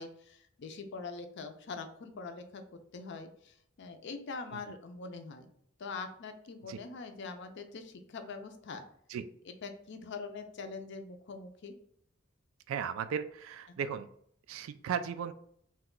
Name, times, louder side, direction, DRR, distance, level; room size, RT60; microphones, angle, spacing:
voice 1, 0.0-2.6 2.9-5.5 5.8-8.8 9.6-11.8, left 4 dB, 60° left, 7 dB, 0.5 m, -43 dB
voice 2, 12.7-14.1 14.5-15.3, right 7 dB, 75° right, 12 dB, 0.3 m, -36 dB
2.9 x 2.2 x 3.7 m, 0.66 s
head